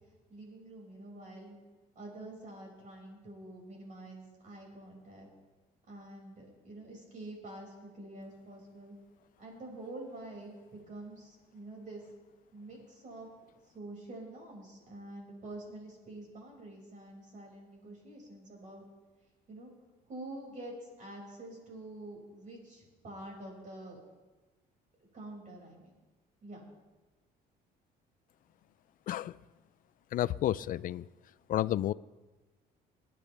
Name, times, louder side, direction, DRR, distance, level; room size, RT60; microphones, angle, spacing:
voice 1, 0.3-1.6 1.9-5.3 5.9-9.0 9.4-12.0 12.5-13.3 13.7-18.8 19.5-19.7 20.1-24.0 25.1-26.0 26.4-26.6, right 1 dB, 50° right, -1 dB, 6.0 m, -47 dB
voice 2, 29.1-29.4 30.1-31.1 31.5-31.9, left 13 dB, 55° left, 18 dB, 0.4 m, -31 dB
28.5 x 10.5 x 3.4 m, 1.2 s
cardioid pair, 110°, 17 cm